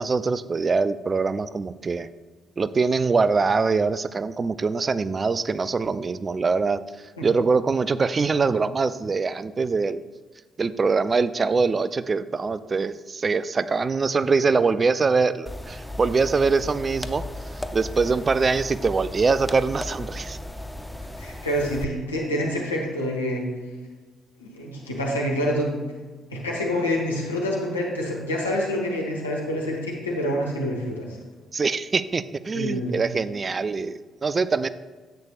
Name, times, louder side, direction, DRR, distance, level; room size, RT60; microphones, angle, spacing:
voice 1, 0.0-2.1 2.6-6.8 7.2-10.0 10.6-17.2 17.7-20.4 31.5-34.7, right 4 dB, 35° right, 15 dB, 0.4 m, -23 dB
sound 1, 15.5-21.8, left 1 dB, 10° left, 0.6 m, -35 dB
voice 2, 21.2-23.4 24.4-25.7 26.3-31.2 32.5-33.0, equal, 90° left, -2 dB, 1.3 m, -27 dB
10.5 x 8.1 x 2.4 m, 1.4 s
figure-of-eight pair, 45°, 0 cm